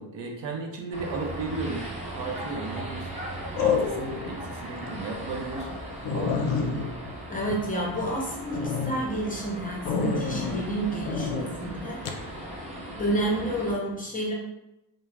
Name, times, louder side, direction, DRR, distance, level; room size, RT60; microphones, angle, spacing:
voice 1, 0.0-3.1 3.6-5.7 6.1-6.5, right 3 dB, 65° right, 1 dB, 0.6 m, -35 dB
sound 1, 0.9-13.7, right 1 dB, 15° right, 0.7 m, -38 dB
sound 2, 2.0-2.4 3.6-4.3 4.8-4.9 5.4-5.5 5.7-5.8 6.1-8.1 8.5-8.9 9.9-10.7 11.1-11.5 12.1-12.2, left 5 dB, 65° left, 0.5 m, -28 dB
voice 2, 7.3-12.4 13.0-14.3, right 1 dB, 20° left, -3 dB, 0.5 m, -30 dB
2.3 x 2.1 x 3.2 m, 0.92 s
cardioid pair, 95°, 48 cm